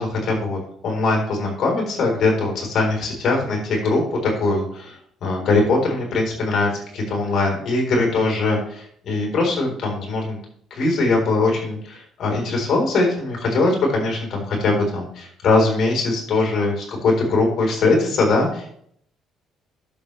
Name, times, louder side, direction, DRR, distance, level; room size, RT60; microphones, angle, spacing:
voice 1, 0.0-10.4 10.7-18.7, left 3 dB, 60° left, 0 dB, 4.4 m, -21 dB
12.0 x 7.1 x 3.4 m, 0.65 s
supercardioid pair, 80°, 0 cm